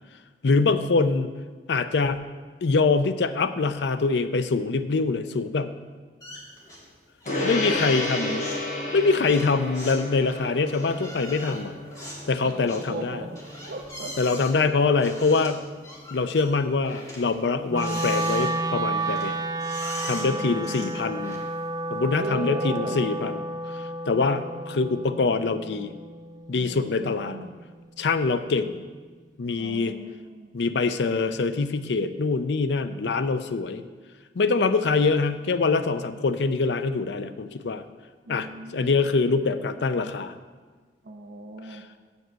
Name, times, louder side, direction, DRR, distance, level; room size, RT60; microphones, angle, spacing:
voice 1, 0.4-1.3 1.7-2.3 2.6-5.8 7.4-8.5 8.9-11.7 12.3-13.2 14.2-15.7 16.1-19.4 20.0-21.4 21.9-23.4 23.7-25.9 26.5-27.4 28.0-28.8 29.4-29.9 30.5-33.8 34.4-37.8 38.3-40.3, left 4 dB, 75° left, 11 dB, 0.5 m, -24 dB
sound 1, 6.2-6.9 7.2-7.6 7.8-21.7, equal, 20° left, 2.0 m, -42 dB
Gong, 7.3-17.0, left 1 dB, 45° left, 1.2 m, -33 dB
voice 2, 12.4-13.4 13.7-14.2 20.2-21.0 22.2-23.0 26.5-27.6 29.6-30.6 34.5-34.6 38.2-39.0 41.0-41.9, right 2 dB, 55° right, 0 dB, 0.6 m, -37 dB
Wind instrument woodwind instrument, 17.7-27.9, right 2 dB, 20° right, 0.3 m, -31 dB
8.0 x 5.4 x 7.5 m, 1.4 s
head